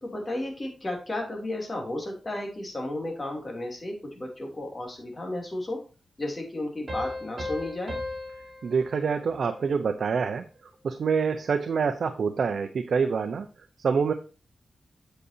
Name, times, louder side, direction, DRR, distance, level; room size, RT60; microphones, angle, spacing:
voice 1, 0.0-5.8 6.2-8.0, left 1 dB, 30° left, 1 dB, 3.0 m, -33 dB
sound 1, 6.9-10.2, left 2 dB, 40° right, 3.5 m, -37 dB
voice 2, 8.6-10.4 10.8-13.5 13.8-14.1, right 5 dB, 70° right, 6 dB, 0.7 m, -26 dB
8.3 x 7.9 x 2.8 m, 0.34 s
wide cardioid pair, 105°, 0 cm